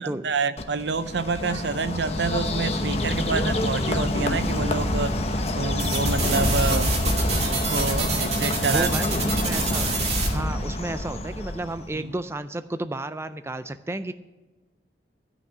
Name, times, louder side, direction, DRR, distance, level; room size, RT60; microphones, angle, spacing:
voice 1, 0.0-5.3 5.5-6.9 7.5-8.9 11.9-12.1, right 4 dB, 75° right, 13 dB, 0.6 m, -28 dB
Bird, 0.6-12.0, left 1 dB, 35° left, 1.0 m, -26 dB
sound 1, 5.8-10.3, right 4 dB, 35° right, 1.9 m, -28 dB
voice 2, 8.7-9.9 10.3-14.1, right 2 dB, 15° right, 11 dB, 0.4 m, -32 dB
13.5 x 6.0 x 9.0 m, 1.1 s
head